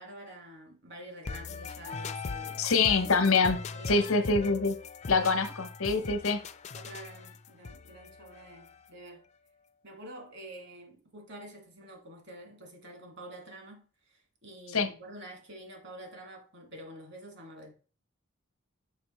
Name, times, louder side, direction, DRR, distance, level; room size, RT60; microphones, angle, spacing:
voice 1, 0.0-2.7 3.7-4.2 5.2-5.3 6.7-9.3 9.8-17.7, right 1 dB, 55° right, 2.0 m, -48 dB
sound 1, 1.2-9.1, left 4 dB, 35° left, 0.4 m, -40 dB
voice 2, 2.6-3.6 3.9-4.8 5.1-6.4 14.7-14.9, left 4 dB, 85° left, 1.0 m, -25 dB
6.3 x 5.4 x 4.3 m
head